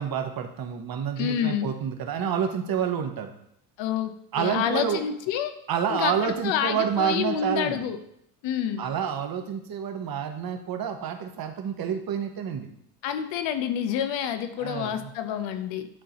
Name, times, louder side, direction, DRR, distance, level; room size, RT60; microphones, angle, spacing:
voice 1, 0.0-3.3 4.3-5.0 5.7-7.9 8.8-12.7 14.6-15.1, right 8 dB, 45° right, 5 dB, 1.1 m, -28 dB
voice 2, 1.2-1.7 3.8-5.5 5.9-8.0 8.4-8.9 13.0-15.9, left 9 dB, 65° left, 10 dB, 0.9 m, -28 dB
11.0 x 3.8 x 3.0 m, 0.73 s
supercardioid pair, 85°, 48 cm